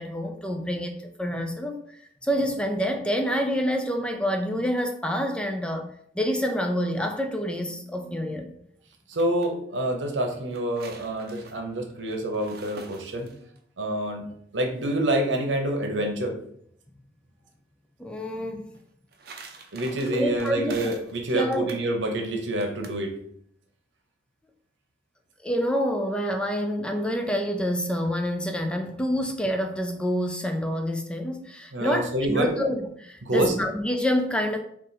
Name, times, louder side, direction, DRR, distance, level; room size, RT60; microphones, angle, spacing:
voice 1, 0.0-5.9 6.2-8.5 18.0-18.6 20.1-20.8 21.3-21.7 25.4-34.6, equal, 5° left, 4 dB, 0.3 m, -27 dB
sound 1, 8.9-9.5 10.3-13.6 18.7-21.2 21.5-21.9 22.6-23.0, right 3 dB, 55° right, 0.6 m, -45 dB
voice 2, 9.1-13.3 13.8-14.2 14.5-16.4 19.7-23.1 31.7-32.5 33.2-33.5, right 1 dB, 85° right, 3 dB, 0.8 m, -27 dB
3.9 x 2.5 x 4.0 m, 0.67 s
head